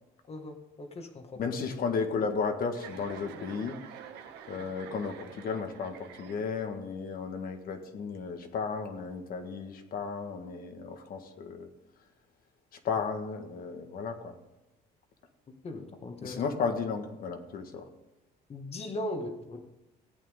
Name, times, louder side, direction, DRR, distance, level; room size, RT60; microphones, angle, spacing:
voice 1, 0.3-1.4 15.6-16.4 18.5-19.6, left 1 dB, 35° left, 1.8 m, -38 dB
voice 2, 1.4-3.8 4.5-11.7 12.8-14.3 16.2-17.8, left 5 dB, 60° left, 1.7 m, -34 dB
Chuckle chortle, 2.7-6.8, right 8 dB, 85° right, 1.4 m, -47 dB
16.5 x 8.8 x 3.7 m
cardioid pair, 110°, 17 cm